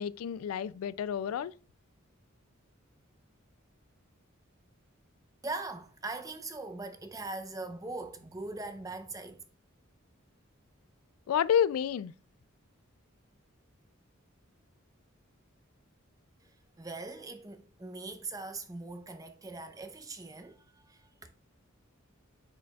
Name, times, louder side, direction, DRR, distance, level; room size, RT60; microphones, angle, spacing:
voice 1, 0.0-1.5 11.3-12.1, left 8 dB, 90° left, 0.3 m, -29 dB
voice 2, 5.4-9.4 16.4-21.3, right 3 dB, 15° right, 0.6 m, -41 dB
9.6 x 5.0 x 2.3 m
head